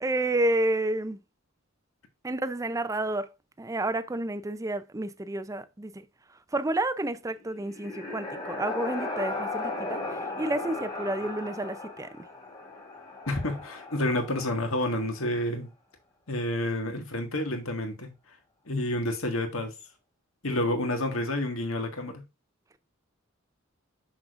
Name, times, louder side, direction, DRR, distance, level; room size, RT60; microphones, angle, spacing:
voice 1, 0.0-1.2 2.2-3.3 3.6-5.9 6.5-12.2, right 1 dB, 15° right, 0.5 m, -30 dB
sound 1, 7.4-15.2, left 2 dB, 20° left, 1.7 m, -36 dB
voice 2, 13.3-15.7 16.3-18.1 18.7-19.7 20.4-22.2, left 1 dB, 75° left, 1.8 m, -29 dB
6.4 x 6.1 x 2.5 m
head